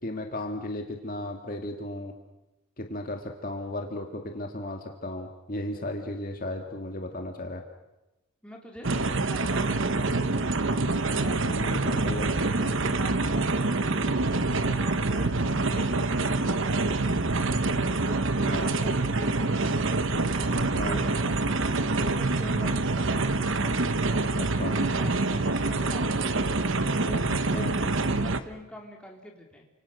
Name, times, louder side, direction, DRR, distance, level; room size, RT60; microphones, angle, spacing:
voice 1, 0.0-2.1 2.8-7.6 11.4-12.3 18.5-18.8 20.8-21.0 24.4-24.8 27.5-27.7, left 1 dB, 40° left, 3 dB, 1.9 m, -35 dB
voice 2, 8.4-10.3 11.1-11.8 12.9-14.2 14.4-15.3 15.7-17.2 17.9-19.6 20.3-23.3 23.6-24.2 24.7-26.5 26.9-29.7, equal, 5° left, 0 dB, 3.4 m, -45 dB
sound 1, 8.8-28.4, right 3 dB, 60° right, 1.1 m, -26 dB
29.5 x 26.5 x 6.6 m, 0.99 s
head